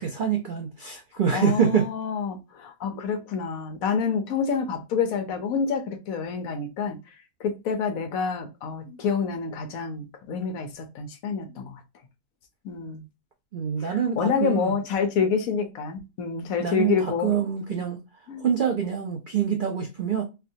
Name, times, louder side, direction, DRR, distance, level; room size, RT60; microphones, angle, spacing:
voice 1, 0.0-1.9 13.5-14.8 16.6-20.2, right 7 dB, 75° right, 0.4 m, -26 dB
voice 2, 1.3-7.0 7.4-11.8 12.6-13.0 13.8-17.3 18.3-18.5, left 5 dB, 70° left, 1.1 m, -28 dB
4.4 x 2.2 x 2.6 m
omnidirectional pair, 1.6 m